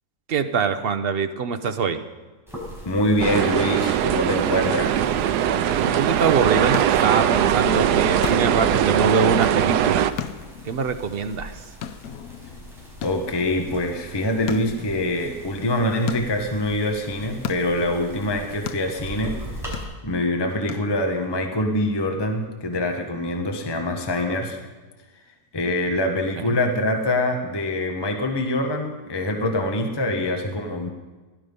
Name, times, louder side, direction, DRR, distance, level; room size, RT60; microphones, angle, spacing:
voice 1, 0.3-2.0 5.4-10.1 10.6-11.6 26.4-26.6, right 5 dB, 50° right, 9 dB, 0.8 m, -24 dB
sound 1, 2.5-19.8, right 1 dB, ahead, 4.9 m, -41 dB
voice 2, 2.8-5.1 13.0-19.4 20.0-24.6 25.5-30.9, left 1 dB, 15° left, 4 dB, 1.1 m, -24 dB
sound 2, 3.2-10.1, right 10 dB, 90° right, 1.2 m, -21 dB
sound 3, 6.6-21.4, left 8 dB, 70° left, 1.0 m, -38 dB
16.5 x 11.5 x 5.3 m, 1.3 s
omnidirectional pair, 1.7 m